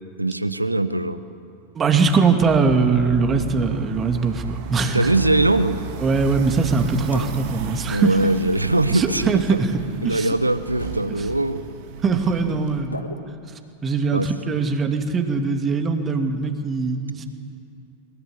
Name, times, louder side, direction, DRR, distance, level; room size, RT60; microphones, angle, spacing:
voice 1, 0.2-1.2 4.9-5.8 7.8-9.6 10.0-11.6 14.1-14.6, right 2 dB, 85° right, 12 dB, 1.1 m, -21 dB
voice 2, 1.7-5.1 6.0-8.1 8.9-9.7 10.0-10.3 12.0-13.0 13.8-17.2, right 4 dB, 20° right, 5 dB, 2.6 m, -21 dB
sound 1, 2.4-12.8, right 6 dB, 45° right, 2.5 m, -34 dB
sound 2, 5.1-5.6 7.1-7.7 9.1-9.6 10.8-11.4 12.9-13.9, left 1 dB, 85° left, 1.6 m, -36 dB
23.0 x 21.5 x 9.8 m, 2.5 s
figure-of-eight pair, 90°, 0 cm